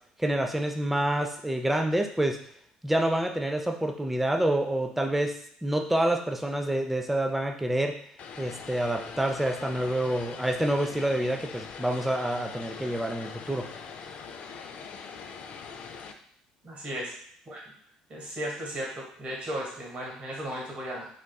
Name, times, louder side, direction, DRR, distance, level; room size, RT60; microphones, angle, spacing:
voice 1, 0.2-2.4 2.8-5.3 5.6-7.9 8.4-13.7, right 1 dB, 5° right, 3 dB, 0.4 m, -27 dB
Vehicle, 8.2-16.1, left 6 dB, 55° left, 0.3 m, -42 dB
voice 2, 16.6-17.1 17.4-17.6 18.1-21.1, equal, 45° right, -3 dB, 1.4 m, -35 dB
3.7 x 2.3 x 2.3 m, 0.63 s
hypercardioid pair, 65°, 3 cm